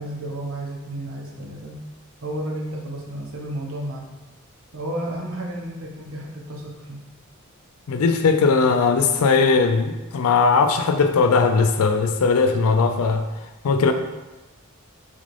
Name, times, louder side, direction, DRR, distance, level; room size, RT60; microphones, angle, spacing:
voice 1, 0.0-1.8 2.2-4.1 4.7-7.0, right 1 dB, 70° right, -1 dB, 0.9 m, -32 dB
voice 2, 7.9-13.2 13.6-13.9, left 4 dB, 80° left, 7 dB, 0.4 m, -19 dB
4.1 x 3.8 x 3.2 m, 1.1 s
head